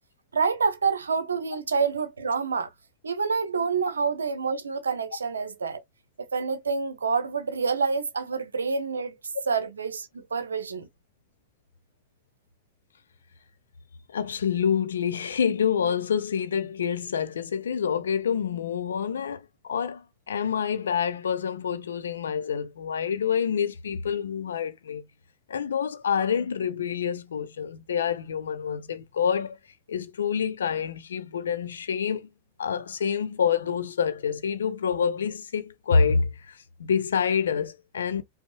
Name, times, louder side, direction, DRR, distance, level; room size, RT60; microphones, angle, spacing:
voice 1, 0.3-2.7 3.0-5.8 6.2-9.2 9.5-10.9, right 5 dB, 70° right, 0.7 m, -27 dB
voice 2, 14.1-25.0 25.5-29.6 29.9-32.3 32.6-38.2, left 7 dB, 65° left, 0.5 m, -27 dB
5.2 x 2.2 x 2.8 m
figure-of-eight pair, 90°, 0 cm